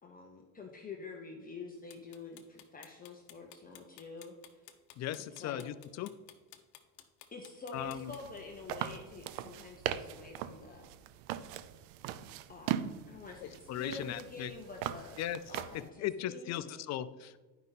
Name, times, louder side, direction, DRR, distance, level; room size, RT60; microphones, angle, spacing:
voice 1, 0.0-4.6 5.4-5.7 7.3-10.9 12.5-16.9, left 3 dB, 20° left, 0 dB, 1.0 m, -48 dB
sound 1, 1.9-8.4, left 12 dB, 60° left, 1.0 m, -55 dB
voice 2, 5.0-6.1 7.7-8.1 13.4-14.5 15.2-15.4 15.7-17.4, left 11 dB, 40° left, 14 dB, 0.5 m, -38 dB
sound 2, 7.8-15.9, right 11 dB, 65° right, 0.7 m, -40 dB
10.5 x 5.4 x 4.1 m, 1.2 s
supercardioid pair, 105°, 45 cm